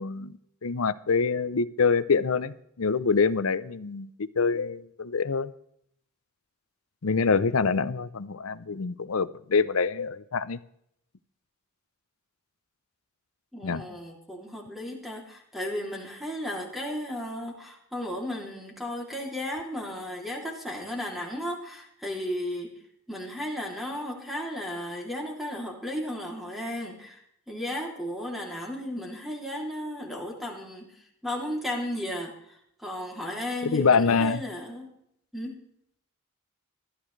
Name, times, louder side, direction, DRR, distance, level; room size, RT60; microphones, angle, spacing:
voice 1, 0.0-5.5 7.0-10.6 13.6-13.8 33.6-34.4, left 5 dB, 75° left, 16 dB, 0.7 m, -25 dB
voice 2, 13.5-22.7 23.1-30.9 31.2-34.9 35.3-35.6, left 1 dB, ahead, -1 dB, 3.0 m, -34 dB
20.5 x 13.0 x 3.3 m, 0.71 s
head